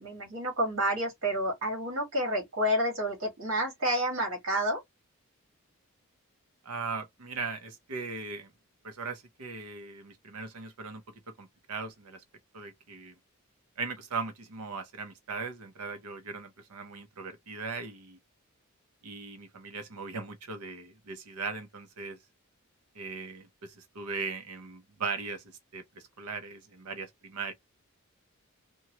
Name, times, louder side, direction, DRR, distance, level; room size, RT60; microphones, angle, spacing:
voice 1, 0.0-4.8, equal, 60° right, 1.6 m, -29 dB
voice 2, 6.6-8.5 8.8-11.0 11.4-12.2 12.5-13.1 13.8-18.2 19.0-22.2 22.9-25.4 25.7-27.5, right 4 dB, 90° right, 0.7 m, -39 dB
2.9 x 2.3 x 2.8 m
head